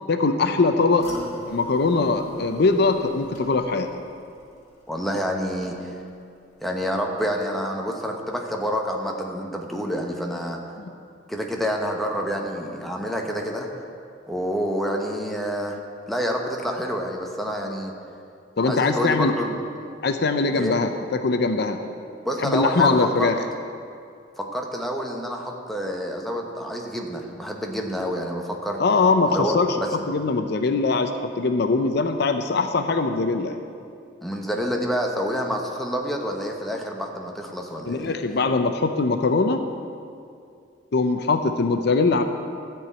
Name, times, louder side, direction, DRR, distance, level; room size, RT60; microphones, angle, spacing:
voice 1, 0.1-1.1 1.5-3.9 10.8-10.9 18.6-19.3 20.0-21.8 22.4-23.4 28.8-29.8 30.1-33.6 37.8-39.6 40.9-42.2, left 3 dB, 60° left, 7 dB, 0.6 m, -21 dB
sound 1, 1.0-6.2 6.5-7.0 7.4-7.5, left 1 dB, 40° left, 1.8 m, -44 dB
voice 2, 4.9-6.0 6.6-10.6 11.3-13.7 14.3-15.8 16.1-17.9 18.6-19.6 20.5-20.8 22.2-23.3 24.4-28.8 29.3-29.9 34.2-38.1, equal, ahead, 1 dB, 1.0 m, -28 dB
13.5 x 4.7 x 8.4 m, 2.4 s
head